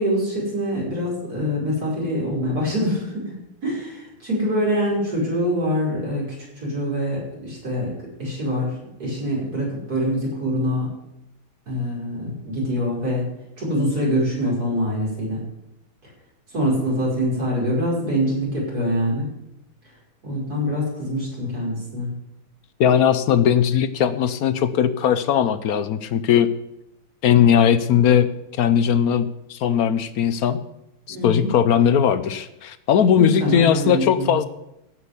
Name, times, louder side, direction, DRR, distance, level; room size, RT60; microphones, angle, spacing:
voice 1, 0.0-3.3 3.6-10.9 11.7-13.3 13.6-15.4 16.5-19.3 20.2-22.1 31.1-31.5 33.2-34.4, equal, 45° right, -4 dB, 6.1 m, -24 dB
voice 2, 22.8-26.5 27.2-30.6 31.1-34.5, left 8 dB, 70° left, 12 dB, 0.9 m, -19 dB
15.5 x 6.2 x 8.1 m, 0.87 s
omnidirectional pair, 2.3 m